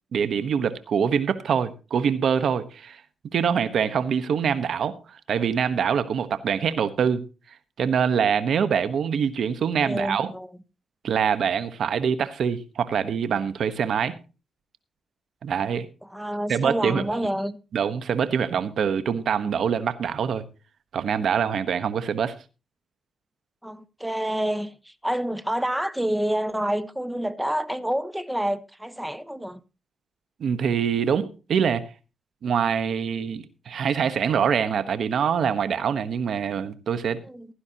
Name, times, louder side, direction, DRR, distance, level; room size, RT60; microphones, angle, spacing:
voice 1, 0.1-3.0 3.3-7.3 7.8-10.3 11.0-14.2 15.4-15.9 16.5-17.2 17.7-20.4 20.9-22.3 30.4-31.8 32.4-37.2, right 7 dB, 70° right, 1.2 m, -24 dB
voice 2, 9.8-10.5 16.0-17.6 23.6-29.6 37.2-37.5, right 1 dB, 5° right, 1.1 m, -28 dB
16.0 x 11.5 x 2.9 m
cardioid pair, 60°, 0 cm